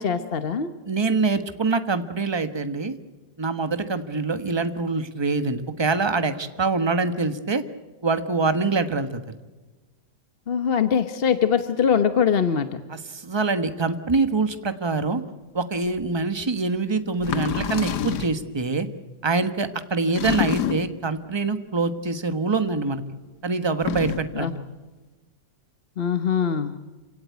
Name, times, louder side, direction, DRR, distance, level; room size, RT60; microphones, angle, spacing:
voice 1, 0.0-0.7 10.5-12.8 24.3-24.5 26.0-26.7, left 7 dB, 40° left, 9 dB, 1.0 m, -22 dB
voice 2, 0.9-3.0 3.4-7.6 8.0-9.2 12.9-15.2 15.5-18.9 19.2-23.0 23.4-24.6, right 3 dB, 20° right, 9 dB, 1.1 m, -25 dB
sound 1, 16.0-16.1 17.2-18.4 20.1-21.0 23.7-24.4, left 9 dB, 75° left, 1.6 m, -27 dB
28.0 x 17.0 x 9.4 m, 1.2 s
omnidirectional pair, 1.8 m